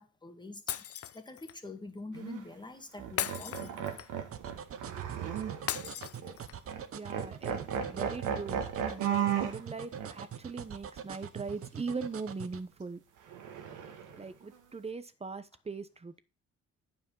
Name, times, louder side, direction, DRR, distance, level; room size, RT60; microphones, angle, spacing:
voice 1, 0.0-3.9, left 2 dB, 15° left, 1.6 m, -46 dB
Shatter, 0.7-1.6 3.2-4.3 5.7-6.7, left 10 dB, 50° left, 0.6 m, -37 dB
sound 1, 2.1-2.4 3.0-5.9 6.2-6.4 6.7-6.9 7.1-9.6 10.0-10.1 13.3-14.2, right 8 dB, 85° right, 1.7 m, -35 dB
sound 2, 4.3-12.6, right 8 dB, 50° right, 0.9 m, -43 dB
voice 2, 6.9-13.0 14.1-16.2, right 4 dB, 20° right, 0.8 m, -40 dB
9.2 x 5.0 x 5.5 m
cardioid pair, 90°, 30 cm